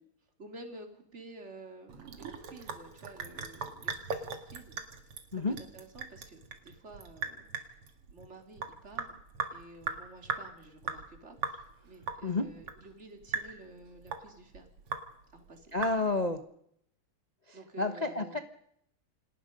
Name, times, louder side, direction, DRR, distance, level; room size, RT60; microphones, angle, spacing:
voice 1, 0.4-4.8 5.4-7.8 8.1-9.1 9.5-14.7 15.3-15.8 17.5-18.4, right 2 dB, 30° right, 5 dB, 3.5 m, -51 dB
Sink (filling or washing) / Drip, 1.9-16.4, right 5 dB, 90° right, 3.0 m, -40 dB
voice 2, 15.7-16.4 17.5-18.4, left 3 dB, 25° left, 8 dB, 0.9 m, -30 dB
28.5 x 19.0 x 5.3 m, 0.71 s
omnidirectional pair, 2.4 m